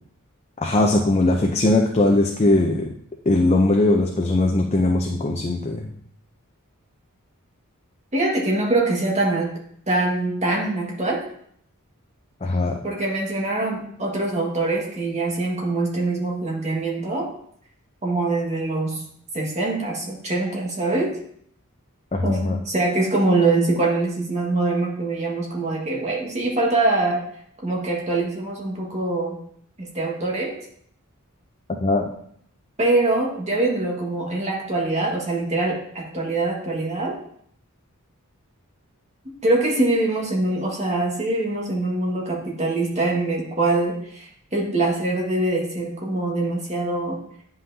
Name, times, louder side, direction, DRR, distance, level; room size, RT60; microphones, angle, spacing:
voice 1, 0.6-2.9 3.3-5.9 12.4-12.8 22.1-22.6 31.7-32.1, left 2 dB, 30° left, 1 dB, 0.6 m, -20 dB
voice 2, 8.1-9.5 9.9-11.2 12.8-17.3 18.0-19.0 19.3-21.1 22.2-27.2 27.6-29.4 29.8-30.6 32.8-37.2 39.4-47.2, right 2 dB, 30° right, -2 dB, 1.7 m, -23 dB
9.5 x 5.6 x 2.7 m, 0.65 s
head